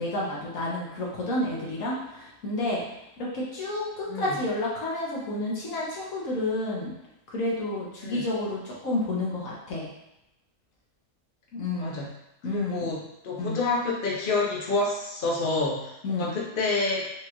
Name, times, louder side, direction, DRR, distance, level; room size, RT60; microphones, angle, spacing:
voice 1, 0.0-2.8 3.2-6.9 7.3-9.9 11.5-12.0 12.4-12.9 13.4-13.6 16.0-16.3, left 2 dB, 65° left, -5 dB, 1.4 m, -30 dB
voice 2, 4.1-4.4 8.0-8.2 11.8-12.1 12.5-17.1, left 3 dB, 45° left, -3 dB, 0.7 m, -28 dB
4.6 x 2.5 x 3.0 m, 0.87 s
omnidirectional pair, 1.6 m